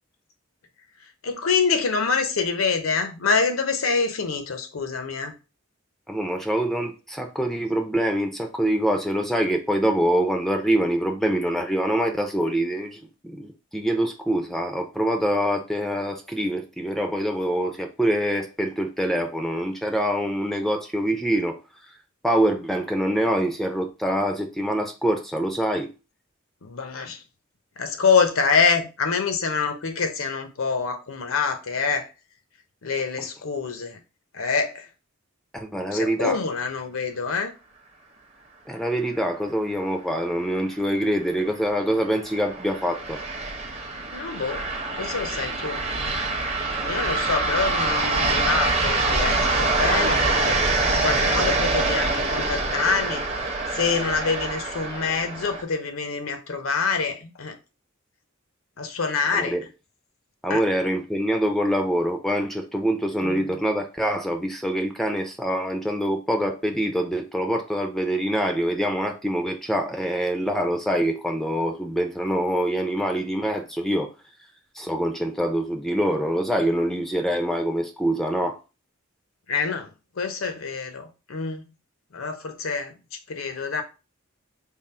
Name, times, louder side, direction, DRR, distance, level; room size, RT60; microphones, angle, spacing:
voice 1, 1.0-5.4 26.6-27.2 27.8-32.1 32.8-34.0 34.3-34.9 35.9-37.5 44.1-44.7 45.0-45.8 46.8-53.3 53.7-57.6 58.8-59.6 60.5-60.6 63.2-63.6 79.5-79.9 80.2-81.7 82.1-83.8, left 5 dB, 85° left, 0.7 m, -26 dB
voice 2, 6.1-21.6 22.2-25.9 35.5-36.4 38.7-43.2 59.3-59.6 60.4-74.1 74.8-78.5, equal, ahead, 0.4 m, -25 dB
sound 1, 40.7-55.6, right 3 dB, 30° right, 0.7 m, -25 dB
3.7 x 2.0 x 4.1 m
head